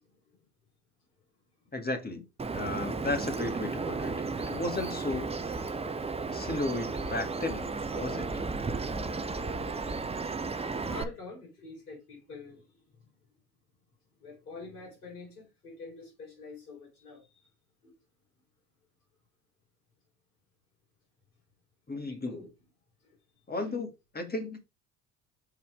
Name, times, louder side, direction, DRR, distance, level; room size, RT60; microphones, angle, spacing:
voice 1, 0.0-0.5 1.6-1.7 10.8-13.1 14.2-17.5 17.8-17.9 22.0-22.5 23.0-23.2 23.5-23.7, left 3 dB, 80° left, 4.1 m, -47 dB
voice 2, 1.7-2.2 2.5-5.7 6.3-8.4 21.9-22.4 23.5-23.9 24.1-24.6, left 2 dB, 20° left, 2.0 m, -34 dB
Bird vocalization bird call bird song, 2.4-11.0, right 4 dB, 15° right, 0.8 m, -34 dB
6.2 x 4.2 x 4.7 m
hypercardioid pair, 65°, 45 cm